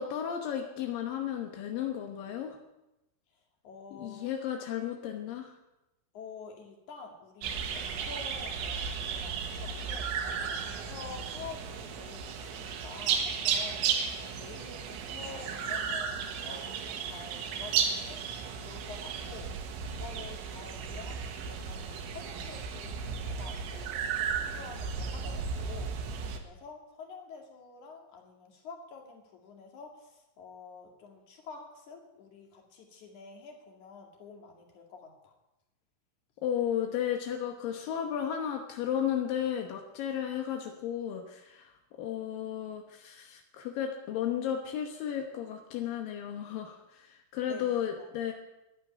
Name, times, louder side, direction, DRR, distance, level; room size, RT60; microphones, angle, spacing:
voice 1, 0.0-2.6 3.9-5.5 36.4-48.3, left 9 dB, 75° left, 3 dB, 2.1 m, -34 dB
voice 2, 3.6-4.2 6.1-26.1 26.4-35.3 47.4-48.1, left 4 dB, 45° left, 2 dB, 3.1 m, -48 dB
sound 1, 7.4-26.4, right 6 dB, 80° right, 3.8 m, -34 dB
12.0 x 10.5 x 9.8 m, 0.96 s
omnidirectional pair, 5.5 m